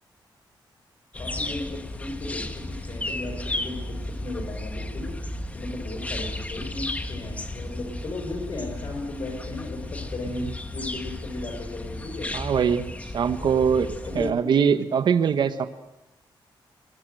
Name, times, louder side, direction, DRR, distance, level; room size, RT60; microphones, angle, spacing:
voice 1, 1.1-5.2 5.5-12.4 14.1-14.8, left 2 dB, 50° left, 2 dB, 4.8 m, -35 dB
sound 1, 1.1-14.3, left 2 dB, 15° left, 1.4 m, -34 dB
voice 2, 12.3-13.9 14.1-15.7, right 7 dB, 60° right, 10 dB, 1.3 m, -22 dB
23.0 x 21.5 x 7.8 m, 0.90 s
wide cardioid pair, 160°, 9 cm